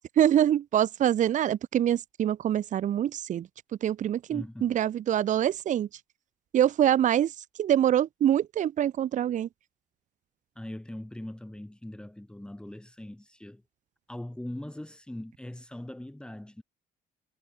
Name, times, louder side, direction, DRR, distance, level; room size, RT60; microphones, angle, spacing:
voice 1, 0.2-3.5 3.8-5.9 6.5-7.3 7.6-9.5, right 10 dB, 50° right, 0.8 m, -25 dB
voice 2, 4.3-4.8 10.6-13.6 14.1-16.6, left 1 dB, 5° left, 4.1 m, -41 dB
cardioid pair, 110°, 17 cm